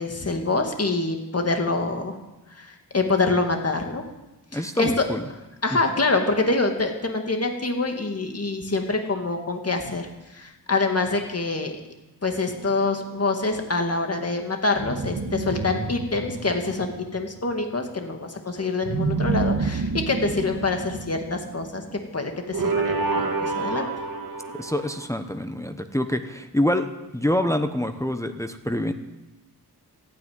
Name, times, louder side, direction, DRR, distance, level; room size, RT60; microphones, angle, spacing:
voice 1, 0.0-2.2 2.6-4.0 4.5-5.1 5.6-11.8 12.2-21.8 22.1-23.9, left 3 dB, 40° left, 4 dB, 2.1 m, -25 dB
voice 2, 4.5-5.2 5.7-5.8 24.5-26.9 27.1-28.9, left 1 dB, 10° left, 7 dB, 0.9 m, -26 dB
sound 1, 12.5-13.5 14.8-17.4 18.8-22.0 22.5-25.1, right 3 dB, 60° right, 1.6 m, -29 dB
14.5 x 9.4 x 9.5 m, 1.0 s
wide cardioid pair, 105°, 39 cm